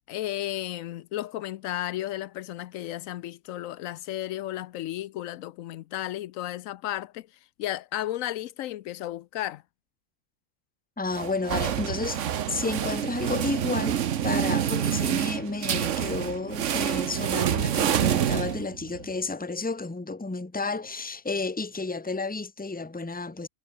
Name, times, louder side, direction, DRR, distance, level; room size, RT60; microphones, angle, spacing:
voice 1, 0.1-7.3 7.6-9.6, left 13 dB, 80° left, 1.0 m, -33 dB
voice 2, 11.0-12.2 12.5-14.0 14.2-23.5, left 3 dB, 5° left, 0.9 m, -31 dB
sound 1, 11.1-19.0, right 9 dB, 65° right, 1.2 m, -27 dB
omnidirectional pair, 1.4 m